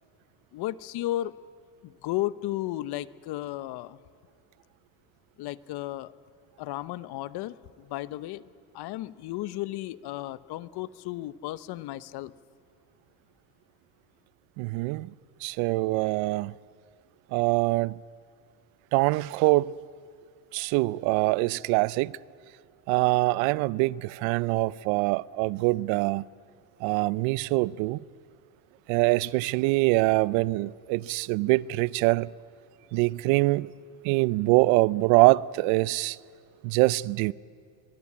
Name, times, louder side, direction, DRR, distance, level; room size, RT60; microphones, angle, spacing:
voice 1, 0.5-1.3 1.8-4.0 5.4-6.1 6.6-8.4 8.7-12.3, left 15 dB, 55° left, 0.8 m, -34 dB
voice 2, 14.6-15.1 15.4-16.5 17.3-18.0 18.9-19.7 20.5-22.1 22.9-26.3 26.8-28.0 28.9-32.3 32.9-33.7 34.0-36.2 36.6-37.3, right 21 dB, 75° right, 0.6 m, -24 dB
24.0 x 22.5 x 8.6 m
cardioid pair, 120°, 48 cm